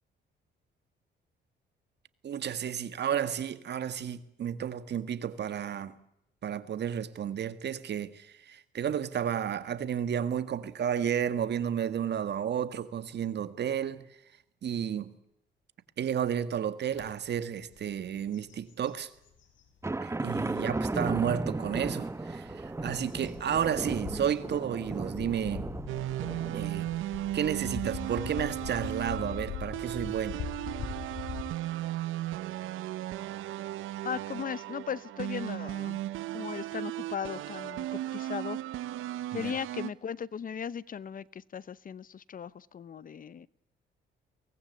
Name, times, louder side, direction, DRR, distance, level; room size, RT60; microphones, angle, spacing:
voice 1, 2.2-6.0 6.4-14.0 14.6-15.1 16.0-19.1 20.0-25.7 26.5-26.9 27.3-30.4 39.3-39.5, right 9 dB, 60° right, 1.8 m, -32 dB
sound 1, 17.0-17.1 17.6-17.8 18.2-19.7 20.3-20.4 22.1-31.4, left 6 dB, 75° left, 5.8 m, -42 dB
sound 2, 19.8-27.0, right 2 dB, 15° right, 0.9 m, -35 dB
sound 3, 25.9-39.9, right 14 dB, 85° right, 0.9 m, -36 dB
voice 2, 34.0-36.0 36.3-38.6 39.3-43.5, left 7 dB, 45° left, 0.8 m, -37 dB
23.5 x 19.0 x 8.3 m
cardioid pair, 90°, 20 cm